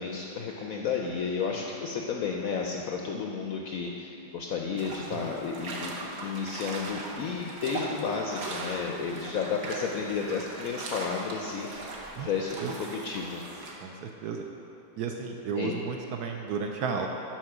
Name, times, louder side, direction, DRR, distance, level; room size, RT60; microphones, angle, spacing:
voice 1, 0.0-11.9 12.2-13.4 15.5-15.7, left 5 dB, 75° left, 0 dB, 0.8 m, -32 dB
sound 1, 4.8-13.7, right 2 dB, 55° right, 1.3 m, -39 dB
voice 2, 13.8-14.4 15.0-17.1, right 6 dB, 70° right, 2 dB, 1.0 m, -33 dB
9.2 x 4.4 x 6.0 m, 2.9 s
omnidirectional pair, 2.0 m